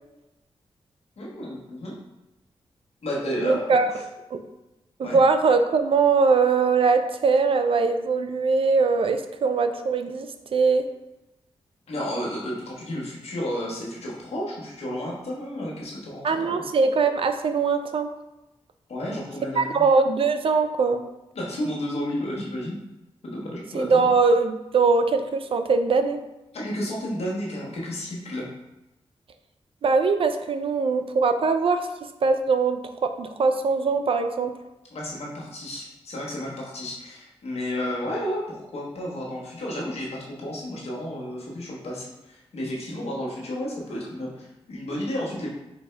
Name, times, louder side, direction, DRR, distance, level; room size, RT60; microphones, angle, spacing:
voice 1, 1.2-2.0 3.0-3.8 5.0-5.2 11.9-16.6 18.9-19.8 21.3-22.8 23.2-24.1 26.5-28.5 34.9-45.5, equal, 70° left, -4 dB, 1.2 m, -32 dB
voice 2, 3.4-3.9 4.3-4.4 5.0-10.8 16.2-18.1 19.6-21.0 23.7-26.2 29.8-31.9 32.2-34.5, right 4 dB, 55° right, 8 dB, 0.4 m, -21 dB
4.6 x 2.6 x 3.3 m, 0.98 s
cardioid pair, 70°, 11 cm